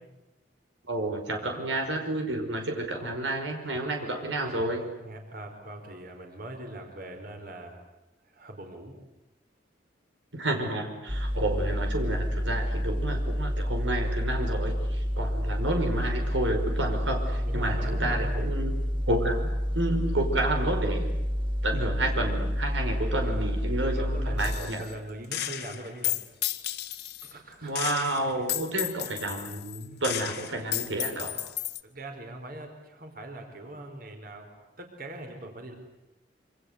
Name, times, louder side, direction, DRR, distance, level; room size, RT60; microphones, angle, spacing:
voice 1, 0.9-4.8 10.3-18.7 19.1-21.1 21.6-24.9 27.6-31.4, right 1 dB, 85° right, 4 dB, 5.4 m, -30 dB
voice 2, 4.5-7.8 8.3-9.0 17.4-18.5 23.0-26.2 27.2-27.9 31.8-34.5 34.8-35.8, right 1 dB, 50° right, 4 dB, 4.9 m, -42 dB
sound 1, 11.1-24.6, equal, 30° right, 3.1 m, -29 dB
Gunshot gunfire, 24.4-24.9 25.3-27.3 27.8-31.8, left 13 dB, 60° left, 1.6 m, -33 dB
27.5 x 26.0 x 8.2 m, 0.97 s
head